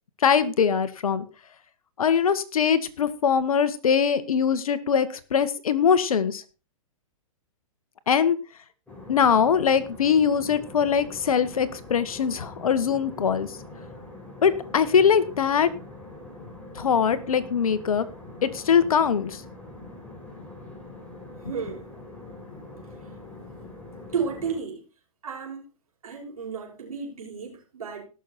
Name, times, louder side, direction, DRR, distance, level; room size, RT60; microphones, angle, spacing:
voice 1, 0.2-1.2 2.0-6.4 8.1-8.4 9.1-13.5 14.4-15.7 16.7-18.0 18.4-19.4, left 7 dB, 75° left, 1.6 m, -22 dB
sound 1, 8.9-24.6, left 2 dB, 5° left, 4.2 m, -43 dB
voice 2, 21.4-21.9 24.1-24.8 25.2-25.7 26.0-28.0, right 6 dB, 85° right, 5.9 m, -32 dB
18.5 x 6.8 x 4.3 m
hypercardioid pair, 125°, 18 cm